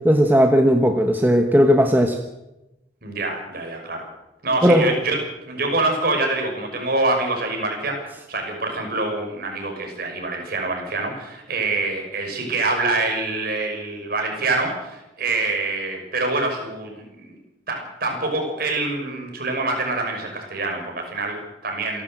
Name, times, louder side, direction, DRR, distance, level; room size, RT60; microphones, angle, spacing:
voice 1, 0.0-2.2 4.6-4.9, equal, 10° right, 4 dB, 1.2 m, -16 dB
voice 2, 3.0-4.1 4.4-5.2 5.5-17.4 17.7-22.0, right 2 dB, 50° right, 2 dB, 6.1 m, -25 dB
28.0 x 12.0 x 7.9 m, 0.96 s
head